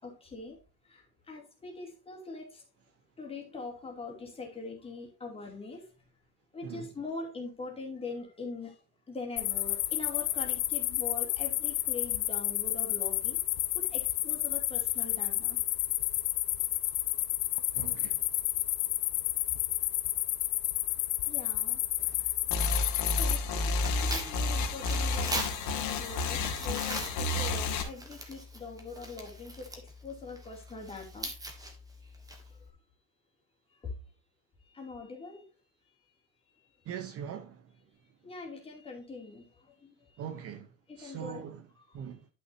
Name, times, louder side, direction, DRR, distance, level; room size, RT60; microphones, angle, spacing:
voice 1, 0.0-2.6 3.2-6.1 6.5-13.4 13.7-15.6 21.3-21.8 22.2-22.3 23.1-31.3 32.5-32.7 33.7-34.0 34.6-35.5 36.5-36.9 38.2-40.4 40.9-41.4 41.8-42.1, left 3 dB, 15° left, 2.7 m, -43 dB
sound 1, 9.4-23.4, left 18 dB, 80° left, 0.9 m, -31 dB
voice 2, 17.7-18.2 36.9-37.7 40.2-40.7 41.0-41.6 41.9-42.2, right 8 dB, 40° right, 0.8 m, -41 dB
Tearing, 22.0-32.7, right 1 dB, 10° right, 1.5 m, -42 dB
sound 2, 22.5-27.8, left 3 dB, 55° left, 2.0 m, -30 dB
11.0 x 6.3 x 2.7 m
cardioid pair, 165°, 36 cm